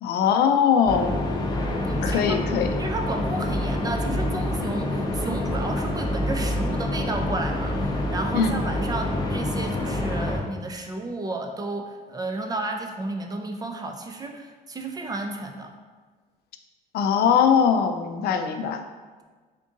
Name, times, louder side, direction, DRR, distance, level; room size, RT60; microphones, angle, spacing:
voice 1, 0.0-1.2 2.0-2.7 8.3-8.5 16.9-18.8, left 7 dB, 70° left, 6 dB, 0.4 m, -21 dB
sound 1, 0.9-10.4, left 1 dB, 25° left, 0.6 m, -27 dB
voice 2, 1.8-2.2 2.8-15.7, right 2 dB, 20° right, 4 dB, 0.4 m, -32 dB
3.6 x 2.6 x 3.8 m, 1.4 s
cardioid pair, 110°, 17 cm